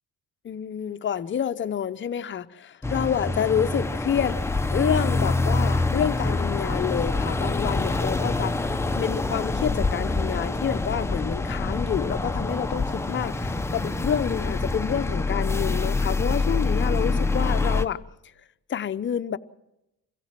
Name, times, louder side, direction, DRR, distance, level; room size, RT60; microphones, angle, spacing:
voice 1, 0.4-4.4 4.7-18.0 18.7-19.4, left 8 dB, 35° left, 0.8 m, -28 dB
sound 1, 2.8-17.9, left 3 dB, 10° left, 0.8 m, -26 dB
25.5 x 16.0 x 7.6 m
cardioid pair, 95°, 32 cm